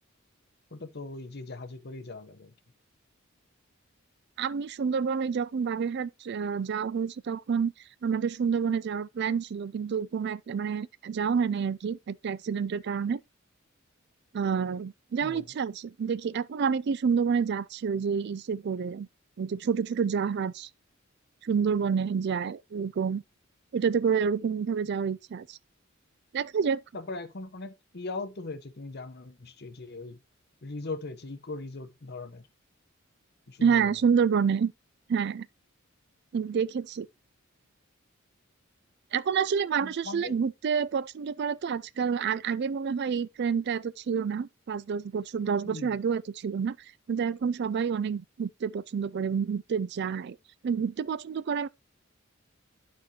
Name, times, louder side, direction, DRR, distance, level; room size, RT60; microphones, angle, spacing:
voice 1, 0.7-2.5 15.2-15.5 26.9-30.2 30.6-32.5 33.5-34.0 39.8-40.4 45.6-46.0, left 3 dB, 50° left, 0.9 m, -40 dB
voice 2, 4.4-7.7 8.0-13.2 14.3-19.1 19.4-20.7 21.4-23.2 23.7-25.6 26.3-26.8 33.6-34.7 35.1-35.5 36.3-37.1 39.1-46.8 47.1-50.4 50.6-51.7, right 6 dB, 55° right, 0.4 m, -28 dB
11.5 x 4.4 x 2.9 m
head